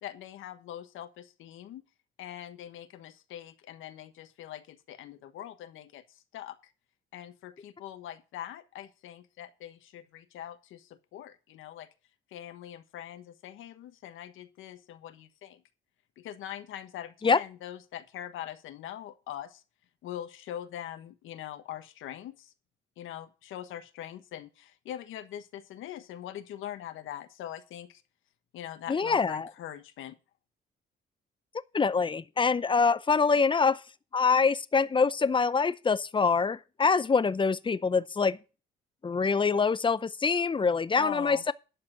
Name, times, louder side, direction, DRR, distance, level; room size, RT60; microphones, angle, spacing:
voice 1, 0.0-1.8 2.2-6.0 6.3-6.6 7.1-11.9 12.3-15.6 16.2-19.6 20.0-22.5 23.0-28.0 28.5-30.1 41.0-41.4, left 11 dB, 85° left, 1.2 m, -42 dB
voice 2, 28.9-29.5 31.7-33.8 34.1-38.4 39.0-41.5, left 5 dB, 25° left, 0.6 m, -25 dB
11.5 x 5.0 x 7.6 m
cardioid pair, 90°, 20 cm